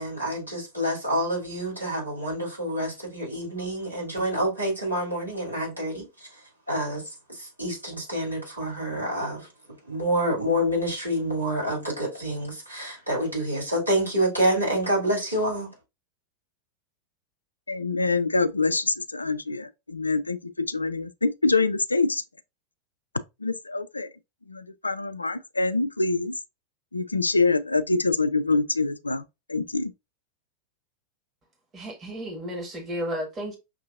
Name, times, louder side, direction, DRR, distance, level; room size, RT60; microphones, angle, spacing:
voice 1, 0.0-6.3 6.7-9.5 9.9-15.7, equal, 85° right, 2.6 m, -27 dB
voice 2, 17.7-22.2 23.4-24.1 24.5-26.3 26.9-29.2 29.5-29.9, left 3 dB, 80° left, 0.3 m, -25 dB
voice 3, 31.7-33.6, equal, 25° right, 1.4 m, -33 dB
5.9 x 2.7 x 2.5 m
figure-of-eight pair, 90°, 0 cm